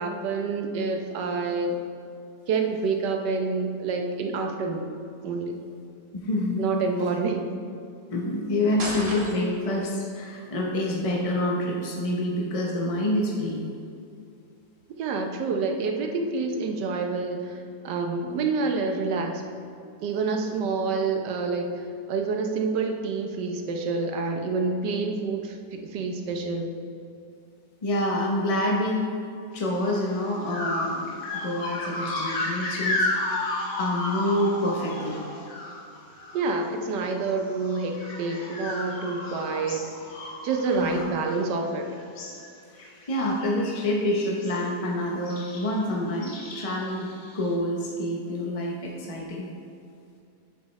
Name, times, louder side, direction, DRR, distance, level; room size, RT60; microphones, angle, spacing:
voice 1, 0.0-1.8 2.5-4.9 5.2-5.6 6.6-7.5 15.0-19.4 20.0-26.7 36.3-39.8 40.4-41.9, right 4 dB, 85° right, 4 dB, 1.4 m, -28 dB
voice 2, 6.2-6.8 8.1-13.6 27.8-29.1 29.5-33.4 33.8-35.2 40.7-41.1 42.7-49.5, left 1 dB, 40° left, -2 dB, 0.5 m, -27 dB
sound 1, 8.8-9.7, right 1 dB, 40° right, 1.4 m, -33 dB
sound 2, 29.8-30.0 30.5-36.6 36.9-41.7 42.0-42.5 42.8-43.1 43.4-44.6 45.3-45.8 46.2-47.5, left 2 dB, 80° left, 1.7 m, -33 dB
8.0 x 7.5 x 3.2 m, 2.6 s
omnidirectional pair, 1.8 m